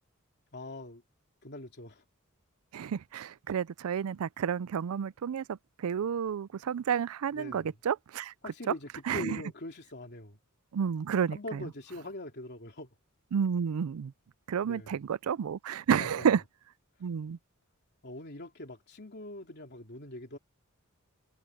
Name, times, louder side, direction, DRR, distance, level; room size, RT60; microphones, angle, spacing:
voice 1, 0.5-1.0 1.4-2.0 7.3-7.7 8.4-10.4 11.3-12.9 14.6-15.0 16.0-16.3 18.0-20.4, left 1 dB, 50° left, 3.2 m, -42 dB
voice 2, 2.7-5.6 5.8-8.3 8.7-8.8 9.1-9.4 10.7-11.6 13.3-14.1 14.5-16.4 17.0-17.4, right 7 dB, 80° right, 0.4 m, -30 dB
head